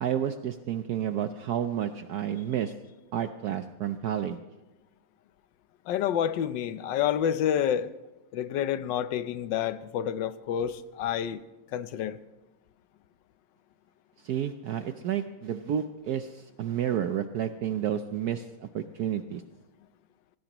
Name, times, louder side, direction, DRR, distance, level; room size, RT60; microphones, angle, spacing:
voice 1, 0.0-2.7 3.1-4.4 14.2-18.5 18.7-19.4, right 9 dB, 65° right, 1.1 m, -30 dB
voice 2, 5.9-7.9 8.3-11.4 11.7-12.2, left 9 dB, 75° left, 1.3 m, -28 dB
25.0 x 18.5 x 3.0 m
omnidirectional pair, 2.0 m